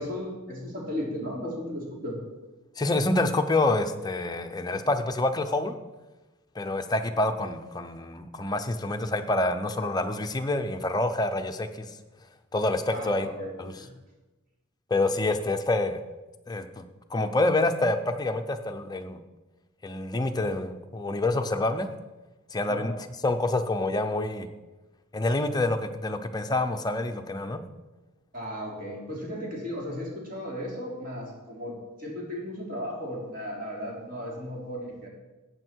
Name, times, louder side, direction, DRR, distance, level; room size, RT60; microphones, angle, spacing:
voice 1, 0.0-2.2 12.9-13.5 13.8-13.9 22.6-22.9 28.3-35.1, equal, 40° right, -3 dB, 3.8 m, -35 dB
voice 2, 2.8-5.8 6.5-11.9 12.5-13.3 13.6-13.7 14.9-16.0 16.5-19.2 19.8-21.9 22.5-22.9 23.2-24.5 25.1-27.6, left 2 dB, 20° left, 6 dB, 0.7 m, -27 dB
14.5 x 8.9 x 4.6 m, 1.1 s
head